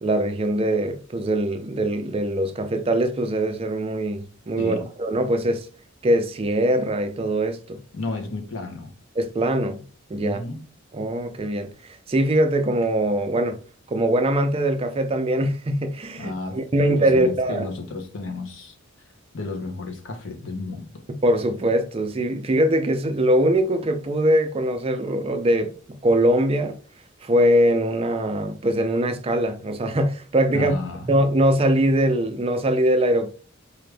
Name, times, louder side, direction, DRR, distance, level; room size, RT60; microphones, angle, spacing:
voice 1, 0.0-5.7 6.0-7.8 9.2-9.8 10.1-10.4 10.9-13.6 13.9-17.7 21.2-25.7 26.0-26.8 27.2-30.7 31.1-33.3, right 1 dB, 30° right, 0.4 m, -22 dB
voice 2, 4.6-4.9 7.9-8.9 10.2-10.6 16.2-18.8 19.3-21.0 30.5-31.2, left 3 dB, 65° left, 0.8 m, -33 dB
4.7 x 2.5 x 3.3 m
head